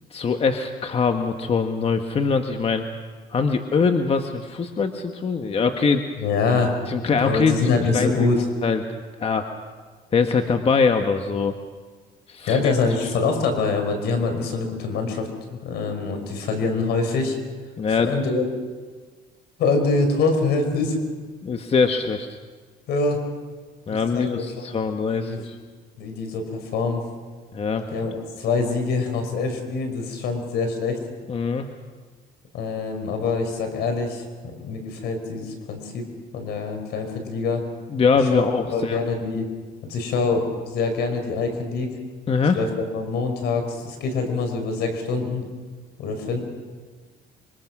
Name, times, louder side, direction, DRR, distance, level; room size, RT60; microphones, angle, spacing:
voice 1, 0.1-2.9 3.3-6.0 6.9-8.3 8.6-8.8 9.2-9.5 10.1-11.6 12.3-12.7 17.8-18.2 21.4-22.3 23.9-25.6 27.5-27.9 31.3-31.7 37.9-39.0 42.3-42.6, left 5 dB, 35° left, 6 dB, 1.4 m, -22 dB
voice 2, 6.2-6.7 7.2-8.5 12.5-15.3 15.6-17.4 17.9-18.4 19.6-21.0 22.9-23.2 23.9-25.4 26.0-27.0 27.9-31.0 32.5-36.1 36.3-37.6 38.2-38.4 38.7-39.5 39.8-41.9 42.5-45.4 46.0-46.4, left 4 dB, 75° left, 5 dB, 5.3 m, -25 dB
26.0 x 24.0 x 6.1 m, 1.5 s
cardioid pair, 110°, 17 cm